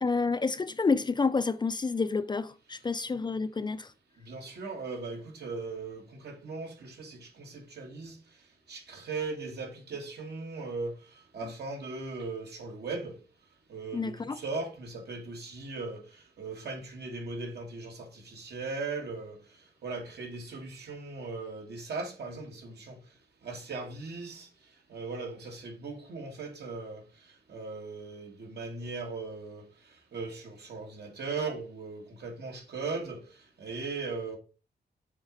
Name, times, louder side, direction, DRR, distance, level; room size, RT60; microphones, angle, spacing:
voice 1, 0.0-3.9 13.9-14.4, left 4 dB, 25° left, 0.4 m, -29 dB
voice 2, 4.2-8.2 8.7-13.2 13.7-19.4 19.8-23.0 23.4-24.5 24.9-27.0 27.5-29.7 30.1-33.3 33.6-34.4, right 3 dB, 75° right, 2.1 m, -38 dB
6.4 x 4.0 x 4.9 m
wide cardioid pair, 120°, 17 cm